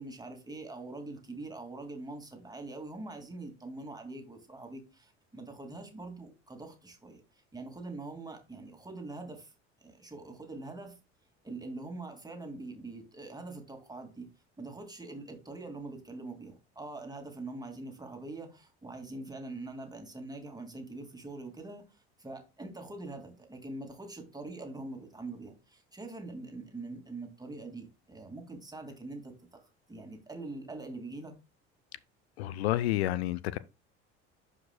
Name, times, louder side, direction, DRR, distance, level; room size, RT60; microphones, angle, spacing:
voice 1, 0.0-9.5 9.8-11.0 11.4-14.3 14.6-29.3 29.9-31.3, right 2 dB, 10° right, 2.2 m, -43 dB
voice 2, 32.4-33.6, left 15 dB, 70° left, 0.5 m, -29 dB
11.5 x 5.0 x 2.2 m
figure-of-eight pair, 60°, 34 cm